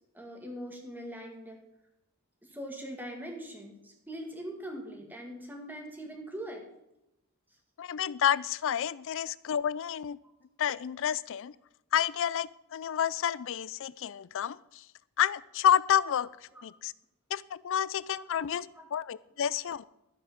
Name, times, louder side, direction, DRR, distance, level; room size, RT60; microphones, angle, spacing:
voice 1, 0.1-1.6 2.4-6.6 16.5-16.6 18.1-18.3 18.8-18.9, equal, 10° right, 2 dB, 2.0 m, -42 dB
voice 2, 7.8-10.2 10.6-11.5 11.9-14.8 15.2-16.3 16.6-16.9 17.3-19.8, left 9 dB, 65° left, 20 dB, 0.4 m, -29 dB
13.0 x 7.9 x 5.1 m, 0.87 s
head